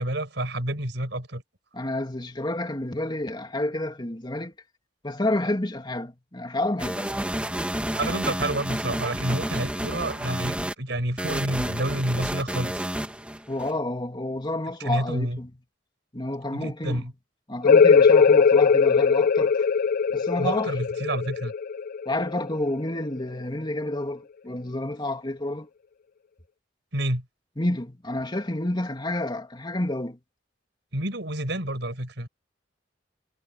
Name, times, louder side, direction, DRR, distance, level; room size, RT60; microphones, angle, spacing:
voice 1, 0.0-1.4 8.0-12.8 14.8-15.4 16.5-17.1 20.4-21.5 26.9-27.2 30.9-32.3, right 1 dB, 70° right, 6.2 m, -29 dB
voice 2, 1.7-4.5 5.0-7.2 13.5-15.5 16.1-17.1 17.5-19.5 20.1-20.7 22.1-25.7 27.6-30.2, left 1 dB, 25° left, 2.8 m, -29 dB
sound 1, 6.8-10.7 11.2-13.7, right 1 dB, 5° right, 2.6 m, -30 dB
sound 2, 17.6-23.0, left 5 dB, 50° left, 0.5 m, -19 dB
head